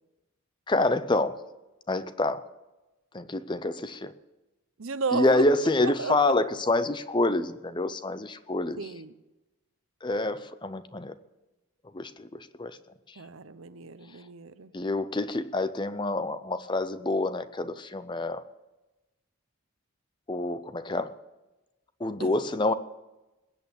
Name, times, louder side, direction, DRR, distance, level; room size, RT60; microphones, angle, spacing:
voice 1, 0.7-1.4 1.9-2.4 3.1-4.1 5.1-8.8 10.0-11.1 11.9-12.8 14.7-18.4 20.3-21.1 22.0-22.7, left 2 dB, 20° left, 13 dB, 0.6 m, -27 dB
voice 2, 4.8-5.4 5.8-6.3 8.8-9.1 13.2-14.7 22.2-22.3, right 5 dB, 75° right, 13 dB, 0.8 m, -33 dB
20.5 x 8.3 x 7.2 m, 1.1 s
head